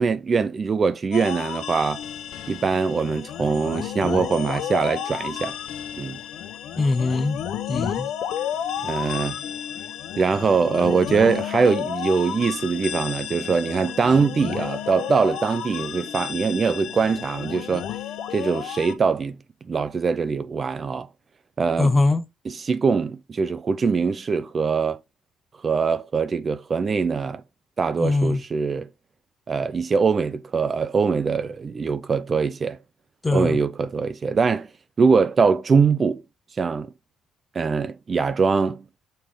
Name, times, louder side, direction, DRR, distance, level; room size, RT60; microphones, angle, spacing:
voice 1, 0.0-2.0 2.5-5.6 6.0-6.2 8.8-9.4 10.2-17.9 18.3-19.4 19.7-21.1 21.6-21.9 22.5-25.0 25.6-27.4 27.8-28.9 29.5-32.8 33.3-34.7 35.0-36.2 36.6-36.9 37.5-38.8, right 5 dB, 30° right, 0.5 m, -22 dB
sound 1, 1.1-18.9, left 10 dB, 65° left, 1.0 m, -32 dB
voice 2, 6.8-7.4 7.7-8.1 21.8-22.2 28.0-28.4 33.2-33.6, left 3 dB, 15° left, 0.7 m, -21 dB
6.9 x 3.7 x 4.9 m
cardioid pair, 125°, 0 cm